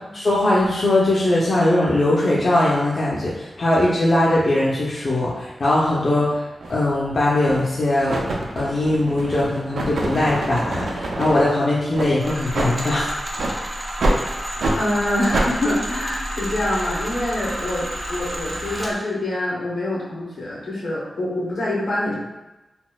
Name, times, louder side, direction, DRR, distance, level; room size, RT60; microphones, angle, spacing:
voice 1, 0.1-8.2 8.6-13.1, left 1 dB, 50° left, -7 dB, 0.5 m, -20 dB
sound 1, 6.6-6.8 7.4-7.7 8.1-11.5 11.9-12.1 12.5-12.7 13.3-13.6 14.0-14.2 14.6-14.8 15.3-15.5, right 2 dB, 85° right, 0.4 m, -25 dB
sound 2, 12.2-18.9, equal, 25° right, 0.5 m, -30 dB
voice 2, 14.7-22.1, left 1 dB, 75° left, -5 dB, 0.8 m, -25 dB
4.0 x 2.0 x 2.2 m, 1.0 s
wide cardioid pair, 135°, 0 cm